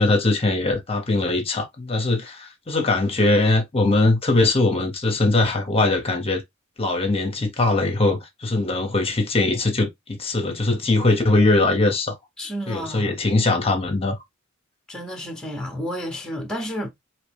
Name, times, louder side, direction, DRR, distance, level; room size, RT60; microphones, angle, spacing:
voice 1, 0.0-6.4 6.8-12.1 12.7-14.2, left 2 dB, 25° left, 0.9 m, -21 dB
voice 2, 12.4-13.1 14.9-16.9, equal, 5° left, 0.9 m, -31 dB
4.3 x 2.9 x 3.3 m
head